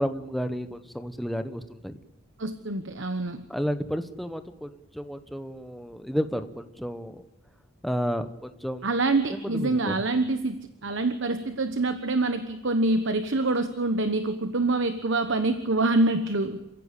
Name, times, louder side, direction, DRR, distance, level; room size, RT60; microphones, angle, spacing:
voice 1, 0.0-2.0 3.5-4.7 4.9-7.2 7.8-8.9 9.3-10.0, equal, ahead, 9 dB, 1.1 m, -31 dB
voice 2, 2.4-3.4 8.8-16.6, right 2 dB, 60° right, 9 dB, 1.2 m, -26 dB
27.5 x 15.5 x 8.3 m, 0.98 s
head